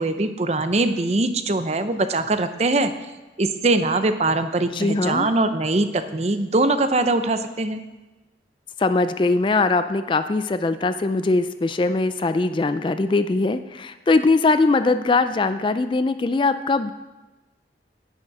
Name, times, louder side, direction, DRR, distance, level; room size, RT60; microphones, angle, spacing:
voice 1, 0.0-2.9 3.4-7.8, right 2 dB, 40° right, 10 dB, 0.6 m, -22 dB
voice 2, 4.7-5.3 8.8-16.9, left 3 dB, 30° left, 11 dB, 0.3 m, -21 dB
10.5 x 9.0 x 4.8 m, 1.1 s
head